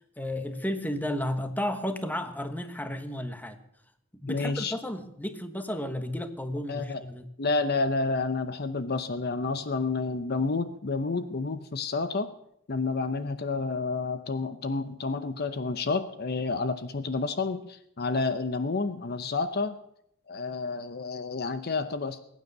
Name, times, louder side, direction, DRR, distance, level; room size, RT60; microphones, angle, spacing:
voice 1, 0.2-3.6 4.2-7.3, left 1 dB, 10° left, 8 dB, 1.2 m, -33 dB
voice 2, 4.3-4.7 6.7-7.0 7.4-12.3 12.7-19.8 20.3-22.2, left 3 dB, 50° left, 11 dB, 0.8 m, -30 dB
21.0 x 9.5 x 6.7 m, 0.74 s
head